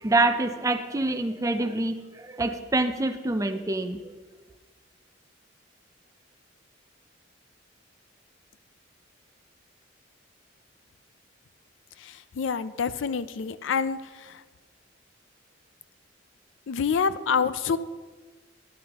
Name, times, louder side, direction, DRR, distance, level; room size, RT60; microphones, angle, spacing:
voice 1, 0.0-4.0, right 2 dB, 15° right, 7 dB, 0.4 m, -26 dB
voice 2, 12.0-14.0 16.7-17.8, left 6 dB, 75° left, 14 dB, 0.4 m, -27 dB
12.5 x 11.0 x 2.9 m, 1.4 s
head